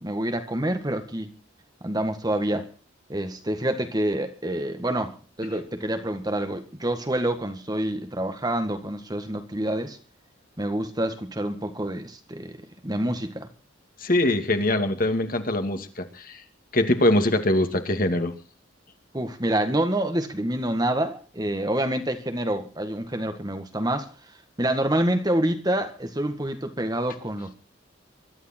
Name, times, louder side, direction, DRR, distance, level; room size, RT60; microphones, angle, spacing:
voice 1, 0.0-1.3 1.8-2.7 3.1-10.0 10.6-13.5 19.1-24.1 24.6-27.5, right 1 dB, 20° right, 1.8 m, -27 dB
voice 2, 14.0-16.4 16.7-18.4, left 1 dB, 45° left, 2.5 m, -23 dB
23.5 x 12.5 x 4.5 m
head